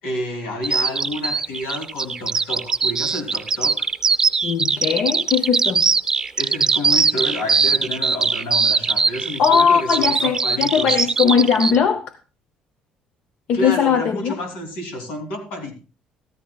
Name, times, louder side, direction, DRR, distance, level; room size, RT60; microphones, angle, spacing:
voice 1, 0.0-3.9 6.4-11.1 11.6-11.8 13.5-15.7, left 1 dB, 85° left, 3.1 m, -30 dB
Bird vocalization bird call bird song, 0.6-11.8, right 5 dB, 20° right, 0.7 m, -20 dB
voice 2, 4.4-5.9 9.4-12.1 13.5-14.4, left 7 dB, 60° left, 0.7 m, -19 dB
13.5 x 13.5 x 2.3 m
cardioid pair, 135°, 3 cm